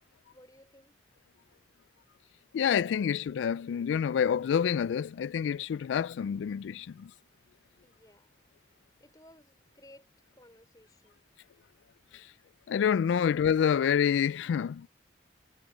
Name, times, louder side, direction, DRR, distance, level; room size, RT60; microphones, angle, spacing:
voice 1, 0.3-1.0 7.8-8.6 9.0-11.3, left 1 dB, 20° left, 3.6 m, -58 dB
voice 2, 2.5-7.1 12.7-14.9, left 8 dB, 90° left, 0.3 m, -27 dB
head